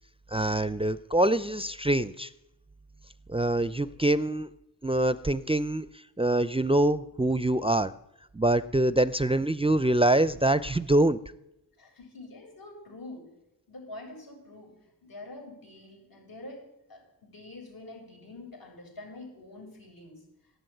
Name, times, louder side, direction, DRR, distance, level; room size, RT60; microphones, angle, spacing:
voice 1, 0.3-2.3 3.3-4.5 4.8-5.9 6.2-7.9 8.3-11.2, right 1 dB, 15° right, 14 dB, 0.5 m, -24 dB
voice 2, 11.8-13.3 13.7-14.7 15.0-16.6 16.9-20.2, left 2 dB, 65° left, 2 dB, 7.4 m, -46 dB
14.0 x 11.0 x 9.2 m, 0.86 s
cardioid pair, 50°, 39 cm